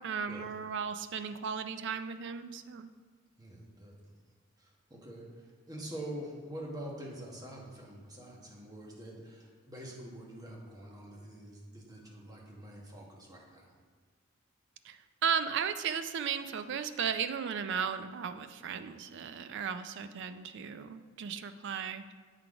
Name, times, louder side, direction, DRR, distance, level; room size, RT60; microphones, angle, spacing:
voice 1, 0.0-2.9 14.8-22.1, right 7 dB, 60° right, 10 dB, 0.4 m, -35 dB
voice 2, 3.4-3.9 4.6-5.3 5.7-13.7, right 1 dB, 20° right, -2 dB, 1.2 m, -45 dB
8.2 x 3.9 x 4.8 m, 1.5 s
head